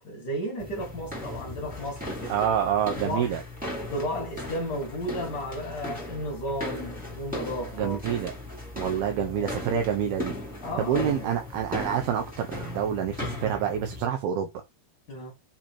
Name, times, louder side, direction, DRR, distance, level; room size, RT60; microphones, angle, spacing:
voice 1, 0.0-2.3 2.9-3.3 3.9-8.0 8.9-9.6 10.6-11.3 15.1-15.3, equal, 70° left, 0.9 m, -34 dB
sound 1, 0.6-14.1, left 1 dB, 5° right, 1.4 m, -37 dB
voice 2, 2.3-3.4 7.7-8.3 8.8-10.4 10.8-14.5, right 9 dB, 75° right, 2.4 m, -27 dB
7.5 x 2.9 x 4.3 m
omnidirectional pair, 4.8 m